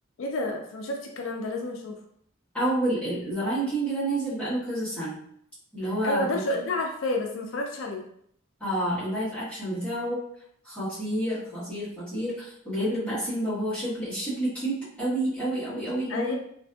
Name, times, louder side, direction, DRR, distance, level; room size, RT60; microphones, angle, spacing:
voice 1, 0.2-2.0 6.0-8.1 16.1-16.4, left 2 dB, 75° left, 2 dB, 0.4 m, -30 dB
voice 2, 2.5-5.2 5.7-6.4 8.6-10.2 10.6-16.4, right 1 dB, 5° left, -13 dB, 1.2 m, -29 dB
2.6 x 2.5 x 2.3 m, 0.67 s
head